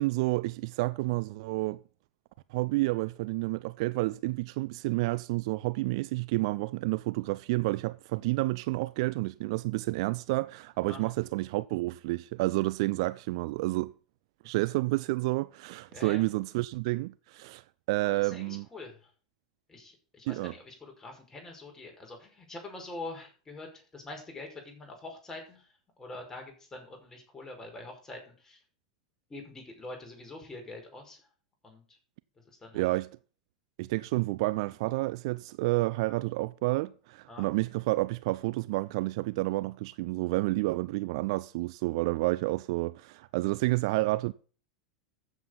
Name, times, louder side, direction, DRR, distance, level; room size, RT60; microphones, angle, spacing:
voice 1, 0.0-1.8 2.5-13.9 14.4-18.7 20.3-20.5 32.7-33.1 33.8-44.3, right 21 dB, 55° right, 0.5 m, -30 dB
voice 2, 15.9-16.2 18.0-19.1 19.7-25.7 26.0-28.6 29.3-31.2 31.6-32.0 32.4-32.9 37.3-37.5, left 2 dB, 15° left, 5.5 m, -45 dB
14.0 x 7.6 x 4.1 m
figure-of-eight pair, 90°, 4 cm